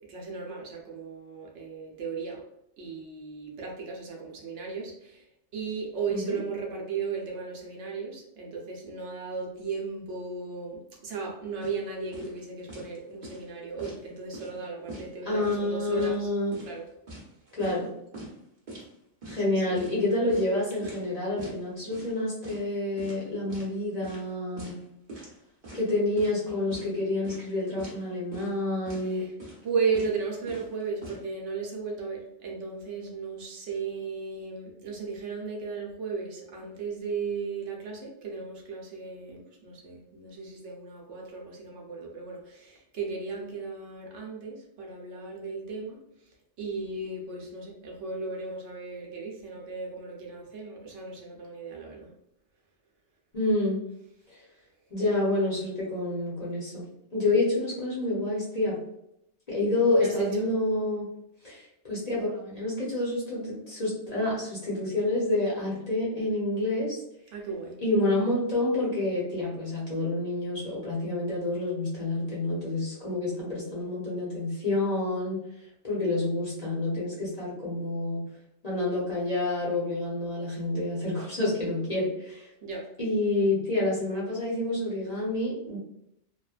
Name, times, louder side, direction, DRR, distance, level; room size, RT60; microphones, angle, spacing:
voice 1, 0.1-2.4 2.8-5.2 5.5-16.3 16.6-16.8 19.4-19.8 29.0-29.3 29.6-46.0 46.6-52.1 60.0-60.5 67.3-67.8 82.6-82.8, right 5 dB, 75° right, -1 dB, 1.0 m, -35 dB
sound 1, 11.6-11.8 12.1-12.4 12.7-13.0 13.2-14.0 14.3-14.6 14.9-15.7 16.0-16.2 16.5-17.9 18.1-18.3 18.7-18.9 19.2-19.4 19.8-21.1 21.4-21.6 21.9-22.2 22.4-22.7 23.0-23.7 24.0-24.3 24.6-24.8 25.1-25.4 25.6-26.4 26.7-26.9 27.2-27.5 27.8-28.0 28.3-28.6 28.9-29.1 29.4-29.7 29.9-30.2 30.5-31.2, right 1 dB, 45° right, 0.9 m, -43 dB
voice 2, 15.2-16.6 17.5-17.9 19.2-24.7 25.7-29.3 53.3-53.8 54.9-56.8 57.1-58.8 59.5-61.0 61.4-67.0 67.8-75.4 75.8-78.2 78.6-82.5 83.0-85.8, left 2 dB, 40° left, -6 dB, 0.8 m, -28 dB
3.0 x 2.2 x 2.4 m, 0.80 s
omnidirectional pair, 1.2 m